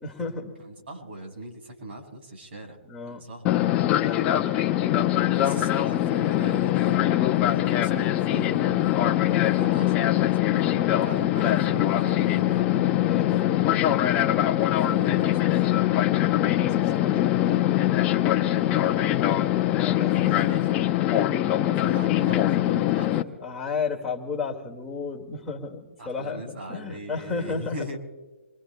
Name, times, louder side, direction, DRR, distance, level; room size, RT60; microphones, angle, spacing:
voice 1, 0.0-0.5 2.9-3.2 4.0-4.6 12.5-12.7 13.1-13.7 16.4-17.8 19.7-20.3 21.7-22.5 23.1-28.0, left 4 dB, ahead, -6 dB, 1.9 m, -34 dB
voice 2, 0.6-2.8 3.0-3.5 5.3-7.1 7.5-10.8 11.0-12.9 14.8-15.7 18.6-19.2 20.1-20.8 21.8-23.4 26.0-28.0, equal, 60° right, 2 dB, 5.4 m, -39 dB
Fixed-wing aircraft airplane, 3.5-23.2, left 13 dB, 15° left, 0.5 m, -23 dB
27.0 x 23.0 x 2.2 m, 1.3 s
hypercardioid pair, 160°, 7 cm